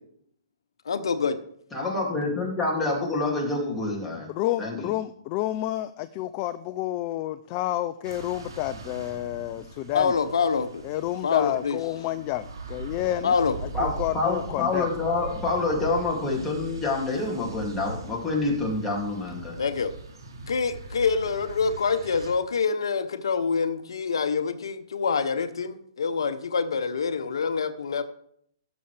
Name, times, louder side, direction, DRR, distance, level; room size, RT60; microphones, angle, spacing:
voice 1, 0.9-1.4 9.9-10.8 11.2-11.8 13.2-13.5 19.6-19.9 20.5-28.0, left 5 dB, 85° left, 9 dB, 0.8 m, -26 dB
voice 2, 1.7-4.3 4.6-4.9 13.7-19.6, left 3 dB, 10° left, -3 dB, 2.6 m, -27 dB
voice 3, 4.3-10.2 10.8-13.3 13.6-14.9, left 14 dB, 35° left, 13 dB, 0.4 m, -30 dB
sound 1, 8.0-22.3, right 3 dB, 90° right, 2.8 m, -40 dB
17.0 x 7.0 x 3.4 m, 0.67 s
hypercardioid pair, 140°, 2 cm